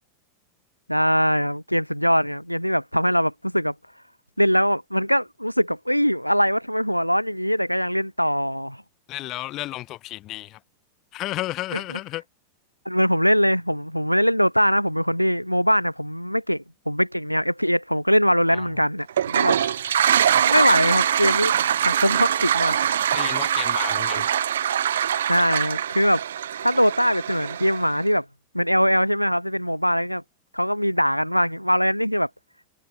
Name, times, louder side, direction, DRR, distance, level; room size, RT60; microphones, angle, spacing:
voice 1, 0.9-3.7 4.4-8.8 11.7-12.0 12.8-19.9 20.4-21.6 21.8-22.8 25.3-26.2 26.6-28.2 28.5-30.2 30.5-32.3, equal, 90° left, 1.7 m, -22 dB
voice 2, 9.1-10.6 11.1-12.2 18.5-18.6 19.6-19.7 23.1-24.3, left 16 dB, 35° left, 1.2 m, -32 dB
Toilet flush, 19.1-28.0, right 9 dB, 65° right, 1.4 m, -23 dB
figure-of-eight pair, 90°, 0 cm